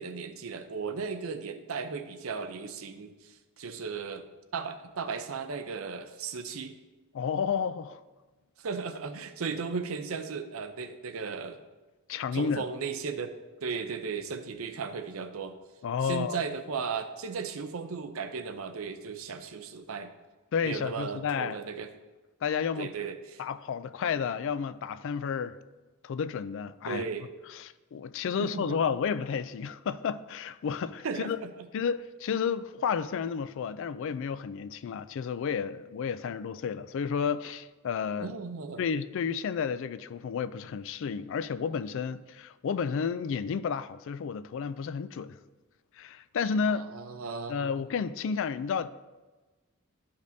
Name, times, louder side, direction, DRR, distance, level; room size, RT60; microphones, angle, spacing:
voice 1, 0.0-4.2 4.5-6.8 8.6-11.6 12.3-13.3 13.6-15.6 16.0-20.1 20.6-21.9 22.8-23.4 26.9-27.3 28.4-28.8 31.0-31.7 38.2-38.8 46.7-47.7, right 5 dB, 75° right, 0.6 m, -36 dB
voice 2, 7.1-8.0 12.1-12.6 15.8-16.4 20.5-21.6 22.4-22.9 23.4-25.5 26.0-27.0 27.6-31.4 31.7-38.3 38.8-45.4 46.0-46.9 47.5-48.9, left 6 dB, 60° left, 0.3 m, -31 dB
11.5 x 5.2 x 2.7 m
head